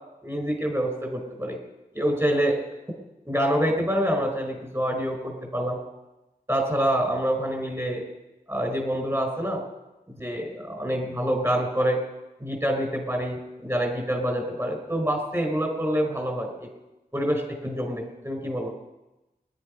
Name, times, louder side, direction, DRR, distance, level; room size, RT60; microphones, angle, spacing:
voice 1, 0.2-1.6 1.9-2.6 3.2-5.8 6.5-8.0 8.5-9.6 10.1-12.0 12.4-16.7 17.1-18.7, equal, 15° right, 3 dB, 5.2 m, -26 dB
23.0 x 11.0 x 5.4 m, 1.0 s
wide cardioid pair, 65°, 16 cm